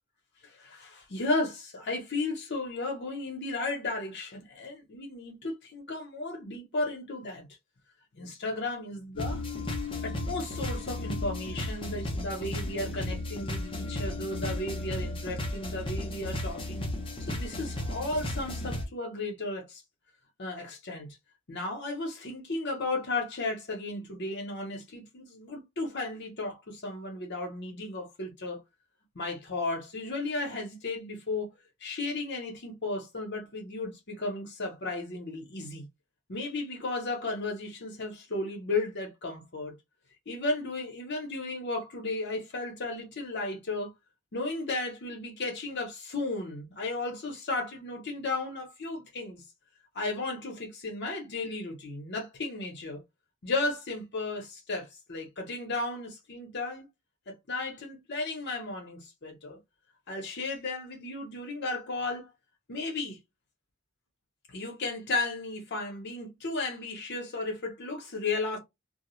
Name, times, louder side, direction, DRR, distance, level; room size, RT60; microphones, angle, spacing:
voice 1, 0.4-7.5 8.1-9.4 10.0-16.9 17.2-19.8 20.4-21.1 21.5-28.6 29.1-31.5 31.8-35.9 36.3-39.7 40.3-43.9 44.3-49.4 49.9-53.0 53.4-56.8 57.3-59.6 60.1-62.3 62.7-63.2 64.5-68.6, left 2 dB, 55° left, 0.8 m, -34 dB
sound 1, 9.2-18.9, left 1 dB, 25° left, 0.7 m, -34 dB
2.3 x 2.3 x 3.0 m
head